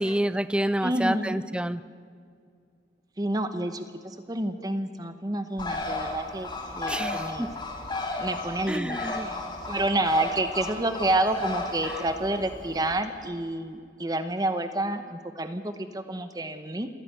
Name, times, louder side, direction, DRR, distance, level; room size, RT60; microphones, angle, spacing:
voice 1, 0.0-1.8 6.9-7.5 8.7-9.3, right 1 dB, 5° right, 15 dB, 0.5 m, -28 dB
voice 2, 0.8-1.4 3.2-7.5 8.2-9.4 9.7-16.9, right 1 dB, 20° right, 9 dB, 0.9 m, -29 dB
Bird, 5.6-13.0, left 2 dB, 25° left, 2.1 m, -34 dB
28.0 x 11.0 x 9.2 m, 2.2 s
head